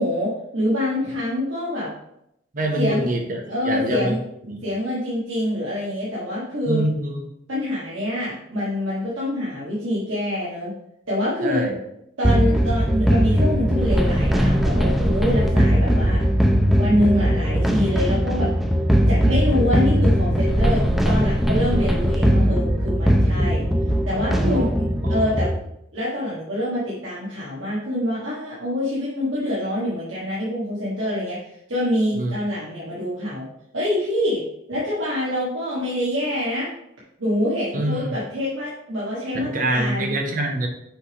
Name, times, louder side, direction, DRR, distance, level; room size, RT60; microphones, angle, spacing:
voice 1, 0.0-1.9 2.8-3.1 3.5-4.2 4.6-6.8 7.5-10.8 11.1-11.7 12.2-16.2 16.7-18.5 19.1-23.6 24.0-25.6 25.9-31.4 31.7-33.5 33.7-34.4 34.7-36.7 37.2-40.1, left 1 dB, 85° right, -7 dB, 1.5 m, -25 dB
voice 2, 2.5-4.2 4.5-4.6 6.7-7.2 11.4-11.8 24.5-24.7 25.0-25.2 32.1-32.3 37.7-38.1 39.3-40.7, right 1 dB, 45° right, 2 dB, 1.0 m, -25 dB
sound 1, 12.2-25.5, equal, ahead, 0.6 m, -19 dB
6.1 x 3.5 x 5.0 m, 0.79 s
head